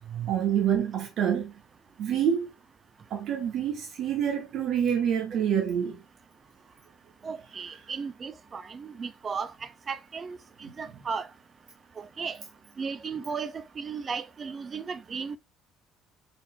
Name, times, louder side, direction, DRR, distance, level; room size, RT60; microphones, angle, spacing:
voice 1, 0.0-1.5 2.0-2.5 3.1-6.0 10.6-11.0, right 9 dB, 60° right, 1.1 m, -27 dB
voice 2, 7.2-11.3 12.0-12.4 12.8-15.4, right 5 dB, 40° right, 0.6 m, -35 dB
4.1 x 4.0 x 2.2 m
hypercardioid pair, 65°, 0 cm